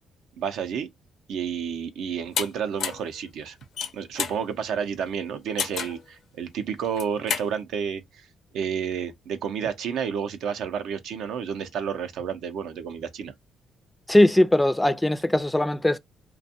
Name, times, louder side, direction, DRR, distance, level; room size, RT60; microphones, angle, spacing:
voice 1, 0.4-0.9 1.3-3.6 3.9-8.3 8.5-13.3, right 7 dB, 80° right, 0.5 m, -30 dB
sound 1, 2.3-2.5 2.8-3.1 3.6-4.4 5.6-6.0 6.8-7.5, left 6 dB, 65° left, 0.5 m, -29 dB
voice 2, 14.1-16.0, left 1 dB, 10° left, 0.3 m, -20 dB
2.5 x 2.2 x 2.6 m
cardioid pair, 90°, 0 cm